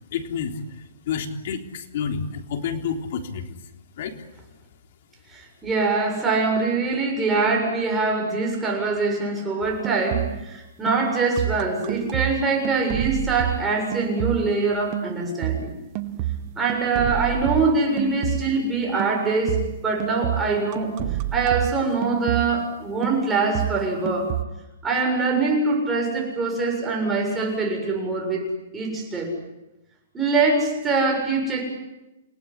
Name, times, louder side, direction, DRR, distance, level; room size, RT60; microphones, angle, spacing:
voice 1, 0.1-3.6 4.0-4.2, left 6 dB, 55° left, 5 dB, 3.6 m, -29 dB
voice 2, 5.3-15.7 16.6-20.9 21.3-24.3 24.8-29.3 30.1-31.6, right 3 dB, 10° right, 1 dB, 7.3 m, -23 dB
sound 1, 9.6-10.6 10.9-14.6 14.9-18.7 19.0-22.7 23.0-24.4, right 13 dB, 35° right, 1.5 m, -29 dB
29.5 x 18.5 x 10.0 m, 0.99 s
hypercardioid pair, 150°, 0 cm